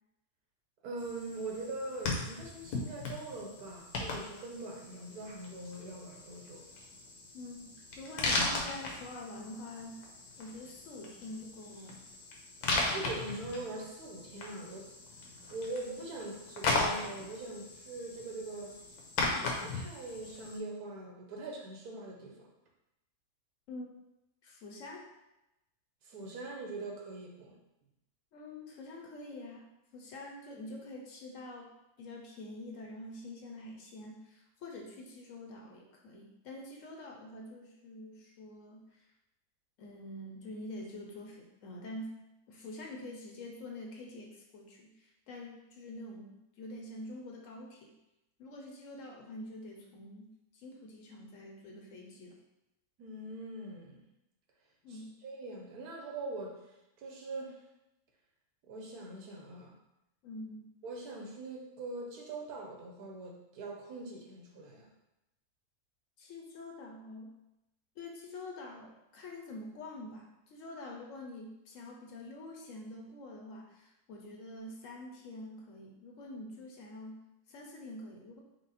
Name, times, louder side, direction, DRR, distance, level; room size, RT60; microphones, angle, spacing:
voice 1, 0.8-6.7 12.8-14.9 15.5-18.8 19.2-22.5 26.0-27.5 53.0-54.0 54.9-56.6 57.0-57.6 58.6-59.8 60.8-64.9, right 2 dB, 80° right, -1 dB, 1.3 m, -42 dB
sound 1, 1.0-20.6, left 3 dB, 80° left, 1.3 m, -38 dB
voice 2, 7.3-10.0 10.4-12.0 23.7-23.9 24.4-25.1 28.3-31.7 32.0-39.1 39.8-42.1 42.5-47.9 48.4-52.4 54.8-55.1 60.2-60.7 66.2-67.4 68.0-78.4, left 1 dB, 65° left, 1 dB, 0.9 m, -46 dB
4.8 x 2.0 x 4.1 m, 0.92 s
omnidirectional pair, 1.6 m